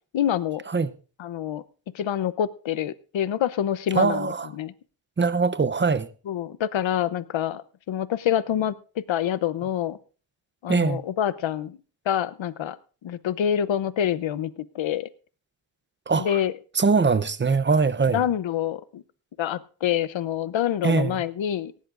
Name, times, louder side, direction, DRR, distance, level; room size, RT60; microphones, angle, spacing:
voice 1, 0.1-0.6 1.2-1.6 1.9-4.3 4.5-4.7 6.3-7.6 7.9-10.0 10.6-11.8 12.1-12.8 13.0-15.1 16.1-16.5 18.1-19.0 19.4-21.7, left 10 dB, 70° left, 0.8 m, -26 dB
voice 2, 3.9-4.5 5.2-6.1 10.7-11.0 16.1-16.4 16.7-18.2 20.8-21.2, right 4 dB, 25° right, 0.7 m, -22 dB
18.5 x 16.5 x 2.5 m
wide cardioid pair, 95°, 48 cm